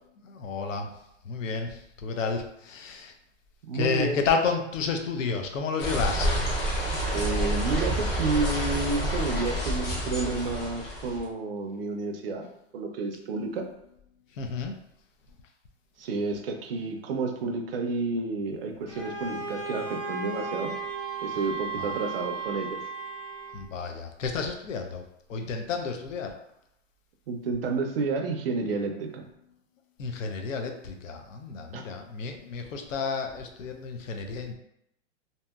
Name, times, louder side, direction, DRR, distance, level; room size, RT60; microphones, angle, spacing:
voice 1, 0.2-0.9 1.2-3.1 3.7-7.0 14.3-14.8 21.7-22.0 23.5-26.4 30.0-34.5, left 5 dB, 80° left, 5 dB, 0.6 m, -31 dB
voice 2, 3.7-4.2 7.1-12.5 12.7-13.7 16.0-20.7 21.2-22.8 27.3-29.2 31.7-31.8, right 3 dB, 50° right, 3 dB, 0.5 m, -30 dB
sound 1, 5.8-11.3, right 1 dB, 50° left, 0.9 m, -28 dB
Bowed string instrument, 18.9-23.7, equal, 30° left, 0.4 m, -38 dB
Wind instrument woodwind instrument, 19.8-23.8, right 13 dB, 90° right, 0.8 m, -37 dB
2.7 x 2.7 x 2.3 m, 0.78 s
hypercardioid pair, 170°, 38 cm